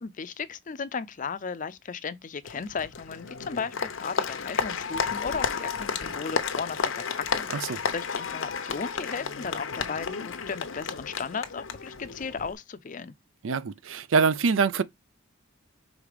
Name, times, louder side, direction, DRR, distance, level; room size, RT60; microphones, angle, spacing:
voice 1, 0.0-13.1, left 5 dB, 40° left, 0.5 m, -35 dB
Applause, 2.4-12.5, left 5 dB, 85° left, 0.8 m, -32 dB
voice 2, 13.4-14.8, right 5 dB, 75° right, 0.5 m, -24 dB
5.1 x 3.9 x 4.9 m
head